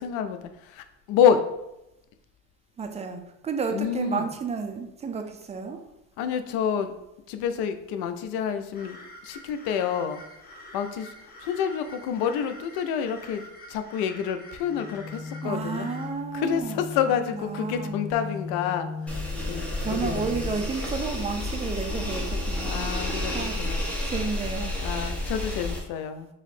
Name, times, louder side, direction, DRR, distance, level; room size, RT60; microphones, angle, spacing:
voice 1, 0.0-1.4 3.7-4.3 6.2-6.9 7.3-9.0 9.2-10.2 10.7-11.1 11.4-13.4 13.7-15.9 16.3-18.9 19.5-20.2 22.6-23.9 24.8-26.3, left 8 dB, 75° left, 9 dB, 0.5 m, -28 dB
voice 2, 2.8-5.8 15.4-16.8 17.3-18.0 19.8-22.9 23.3-23.6 24.1-24.7, right 5 dB, 20° right, 5 dB, 0.4 m, -31 dB
sound 1, 8.7-16.1, equal, 25° left, 1.1 m, -46 dB
sound 2, 14.6-20.6, left 5 dB, 55° right, 1.2 m, -38 dB
sound 3, 19.1-25.8, left 1 dB, 5° left, 0.9 m, -30 dB
3.1 x 2.7 x 4.1 m, 0.88 s
supercardioid pair, 105°, 37 cm